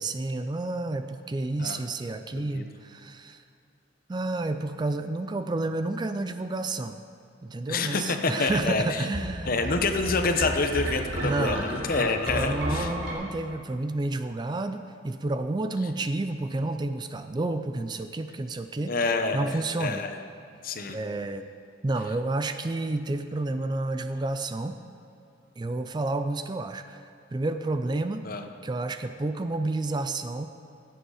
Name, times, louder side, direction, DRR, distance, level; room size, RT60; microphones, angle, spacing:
voice 1, 0.0-3.4 4.1-7.0 7.4-9.6 11.2-11.6 12.0-18.9 19.3-20.0 20.9-21.5 21.8-24.8 25.6-27.0 27.3-28.2 28.6-30.5, right 2 dB, 25° right, 9 dB, 0.4 m, -30 dB
voice 2, 2.3-2.7 7.7-9.1 9.5-12.9 18.8-20.2 20.6-21.0 28.2-28.4, left 3 dB, 50° left, 6 dB, 0.8 m, -27 dB
sound 1, 8.5-13.1, equal, 70° right, 2.8 m, -33 dB
16.5 x 7.8 x 4.9 m, 2.6 s
head